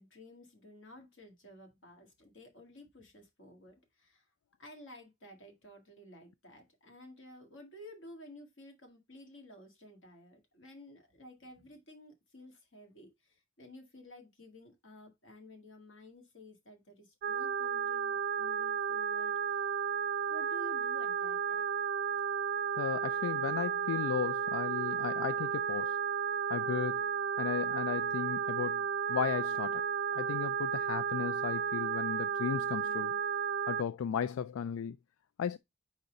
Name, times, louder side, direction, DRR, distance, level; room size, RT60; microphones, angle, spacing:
voice 1, 0.0-4.3 4.6-19.8 20.2-21.6, left 1 dB, 65° left, 1.9 m, -53 dB
sound 1, 17.2-33.8, right 7 dB, 45° right, 0.3 m, -33 dB
voice 2, 22.8-26.0 26.5-27.0 27.4-29.8 30.1-33.2 33.7-35.0 35.4-35.6, left 8 dB, 80° left, 0.3 m, -35 dB
4.7 x 4.1 x 5.0 m
head